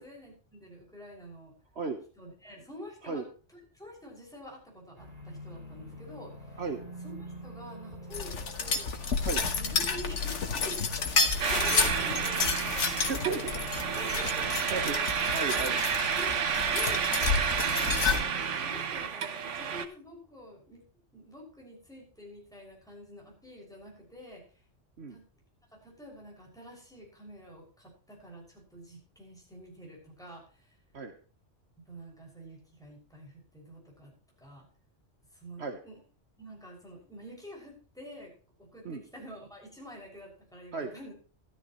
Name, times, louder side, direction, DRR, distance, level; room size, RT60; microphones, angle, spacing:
voice 1, 0.0-1.5 2.2-3.3 3.5-6.6 7.0-9.0 9.3-13.4 14.0-14.5 16.1-17.1 17.4-20.8 21.1-24.4 25.1-25.2 25.7-30.8 31.9-34.1 34.4-34.7 35.3-36.0 36.4-38.3 38.6-41.1, equal, 5° left, -2 dB, 6.2 m, -47 dB
sound 1, 5.0-18.6, equal, 30° right, 2.7 m, -45 dB
sound 2, 8.1-18.2, left 5 dB, 80° left, 1.6 m, -30 dB
sound 3, 11.4-19.9, right 7 dB, 90° right, 1.3 m, -30 dB
voice 2, 13.0-13.4 14.7-15.8 25.0-25.2 30.9-31.1 35.6-35.8 38.8-39.0 40.7-40.9, right 4 dB, 65° right, 7 dB, 1.4 m, -34 dB
13.5 x 13.5 x 3.1 m, 0.38 s
omnidirectional pair, 1.2 m